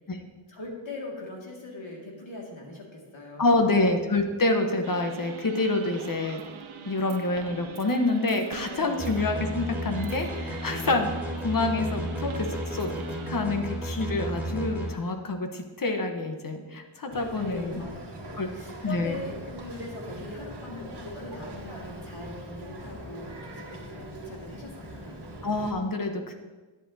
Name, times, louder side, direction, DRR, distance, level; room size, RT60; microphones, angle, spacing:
voice 1, 0.5-3.7 8.7-9.1 17.3-25.2, left 2 dB, 70° left, -2 dB, 2.2 m, -41 dB
voice 2, 3.4-6.4 6.9-12.9 13.3-17.9 18.4-18.5 18.8-19.1 25.4-26.3, left 2 dB, 45° left, 5 dB, 1.1 m, -27 dB
sound 1, 4.8-13.3, right 7 dB, 75° right, 0.8 m, -43 dB
sound 2, 9.0-14.9, right 1 dB, 5° right, 2.8 m, -33 dB
Boat Water vehicle, 17.1-25.7, right 1 dB, 55° right, 1.5 m, -42 dB
10.5 x 9.1 x 2.8 m, 1.3 s
wide cardioid pair, 80°, 48 cm